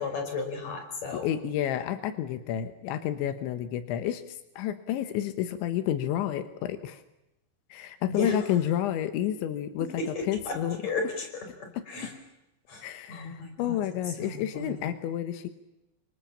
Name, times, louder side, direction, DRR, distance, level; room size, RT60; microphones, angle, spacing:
voice 1, 0.0-1.3 8.1-8.3 10.0-10.5 10.8-11.3 11.6-12.1 12.7-12.8 13.1-13.8 14.2-14.8, left 3 dB, 40° left, 5 dB, 5.9 m, -33 dB
voice 2, 1.2-7.0 7.7-10.8 11.7-12.1 12.8-15.5, left 11 dB, 85° left, 10 dB, 3.5 m, -30 dB
29.5 x 24.5 x 7.2 m, 0.90 s
omnidirectional pair, 5.1 m